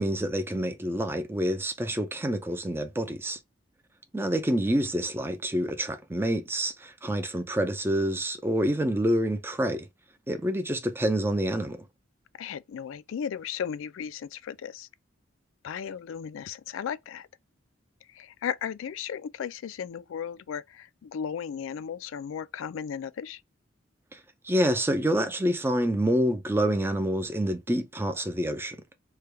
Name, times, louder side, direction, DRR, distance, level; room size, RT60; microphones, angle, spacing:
voice 1, 0.0-3.4 4.1-9.9 10.3-11.8 24.1-28.8, right 1 dB, 10° right, 0.4 m, -27 dB
voice 2, 12.4-14.9 15.6-17.3 18.1-23.4, left 7 dB, 80° left, 0.3 m, -35 dB
3.3 x 2.2 x 3.3 m
head